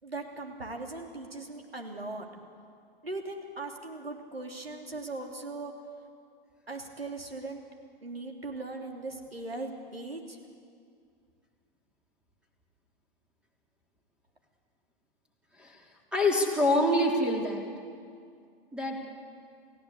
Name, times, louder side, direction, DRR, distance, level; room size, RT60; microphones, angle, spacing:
voice 1, 0.0-2.3 3.0-5.7 6.7-7.6 8.0-10.4, right 2 dB, 85° right, 2 dB, 3.2 m, -39 dB
voice 2, 16.1-17.7 18.7-19.0, left 1 dB, 5° right, 0 dB, 3.8 m, -26 dB
29.0 x 16.0 x 8.4 m, 2.3 s
figure-of-eight pair, 100°, 29 cm